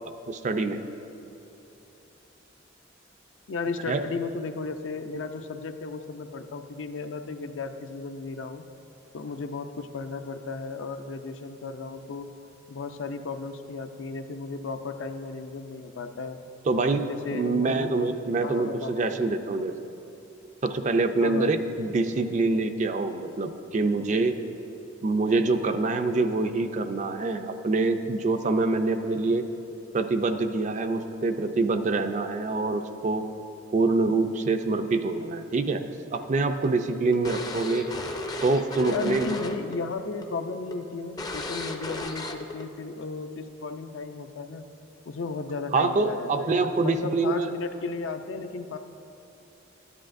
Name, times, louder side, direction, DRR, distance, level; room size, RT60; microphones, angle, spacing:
voice 1, 0.3-0.8 3.9-4.0 16.7-17.0 17.3-19.7 20.6-24.4 25.0-29.5 29.9-33.3 33.7-37.9 38.4-39.3 45.7-47.5, right 3 dB, 40° right, 8 dB, 0.4 m, -25 dB
voice 2, 3.5-8.7 9.1-12.3 12.7-16.4 17.0-17.9 18.4-19.1 21.2-21.5 38.9-44.7 45.1-48.8, left 4 dB, 70° left, 8 dB, 0.5 m, -35 dB
sound 1, 36.1-39.8 40.0-40.3 40.7-40.8 41.2-42.6, left 2 dB, 20° left, 0.4 m, -34 dB
13.0 x 9.9 x 2.6 m, 3.0 s
head